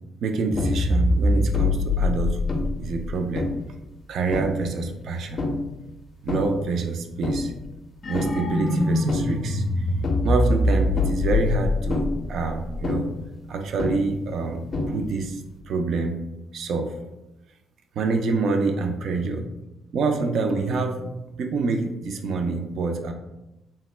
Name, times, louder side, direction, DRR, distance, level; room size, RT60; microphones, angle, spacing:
voice 1, 0.2-3.5 4.1-5.5 6.2-7.5 8.1-9.6 10.2-13.1 13.5-15.4 15.7-16.2 16.5-16.9 18.0-19.5 19.9-21.1 21.4-23.1, right 3 dB, 65° right, 5 dB, 0.4 m, -26 dB
sound 1, 0.5-3.7 4.3-4.8 5.4-5.8 6.3-6.7 7.2-7.7 8.0-13.4 13.8-14.4 14.7-15.4, left 2 dB, 45° left, 0.4 m, -24 dB
3.2 x 2.0 x 3.2 m, 0.95 s
cardioid pair, 90°, 0 cm